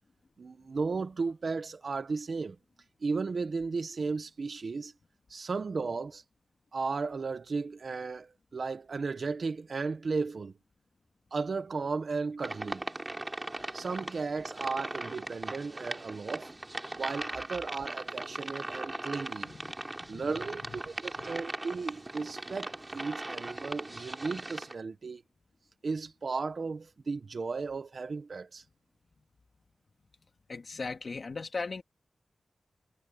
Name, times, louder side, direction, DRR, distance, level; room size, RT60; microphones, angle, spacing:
voice 1, 0.4-2.6 3.0-4.9 5.3-6.2 6.7-10.5 11.3-12.8 13.7-16.5 16.9-19.5 20.1-25.2 25.8-28.6, right 4 dB, 55° right, 1.4 m, -35 dB
sound 1, 12.4-24.7, right 2 dB, 20° right, 4.0 m, -39 dB
voice 2, 30.5-31.8, left 4 dB, 50° left, 2.4 m, -37 dB
wide cardioid pair, 120°, 0 cm